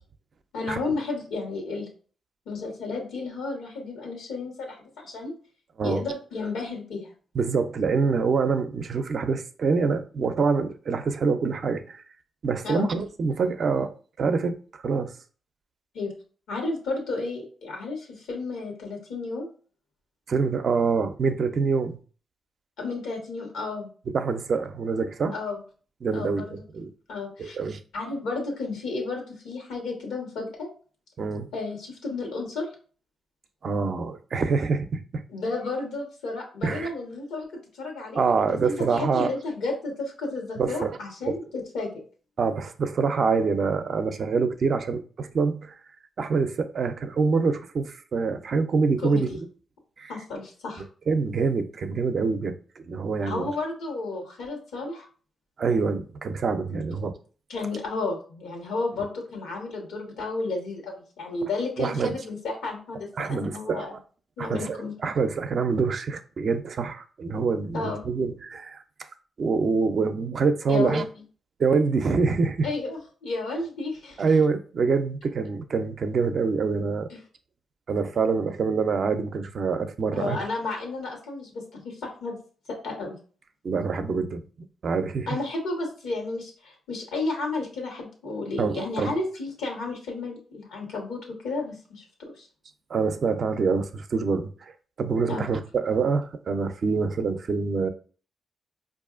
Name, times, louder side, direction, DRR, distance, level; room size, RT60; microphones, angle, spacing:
voice 1, 0.5-1.9 2.5-5.3 5.8-7.1 12.6-12.9 15.9-16.1 16.5-19.5 22.8-23.9 25.3-25.6 26.1-26.6 27.1-27.6 27.9-30.7 31.5-32.7 35.3-37.5 37.7-41.9 49.0-49.4 50.1-50.8 53.2-55.1 56.7-56.8 57.5-64.0 64.4-64.9 67.7-68.0 70.7-71.0 72.6-74.2 77.1-77.2 80.1-82.4 82.7-83.2 85.3-92.5 95.3-95.5, left 3 dB, 85° left, 1.2 m, -32 dB
voice 2, 7.3-12.0 12.4-15.1 20.3-22.0 24.0-25.4 26.0-26.9 27.4-27.8 31.2-31.5 33.6-35.2 36.6-36.9 38.1-39.4 40.6-41.0 41.3-41.4 42.4-45.8 46.2-49.5 50.0-50.2 50.8-53.5 55.6-57.1 61.4-61.5 61.8-62.3 63.1-63.9 64.4-69.1 69.4-71.0 71.6-72.7 74.2-77.1 77.9-80.4 83.6-85.4 88.6-89.2 92.9-94.7 95.0-97.9, right 4 dB, 60° right, 0.4 m, -26 dB
4.7 x 2.5 x 2.4 m
supercardioid pair, 55°, 0 cm